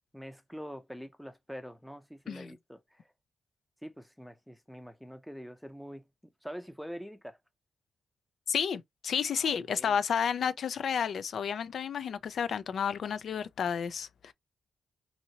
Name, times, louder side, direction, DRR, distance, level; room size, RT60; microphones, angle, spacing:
voice 1, 0.1-3.1 3.8-6.0 6.4-7.4 9.3-10.0, equal, ahead, 0.5 m, -45 dB
voice 2, 8.5-14.3, left 7 dB, 70° left, 0.4 m, -31 dB
2.8 x 2.7 x 2.7 m
cardioid pair, 115°, 0 cm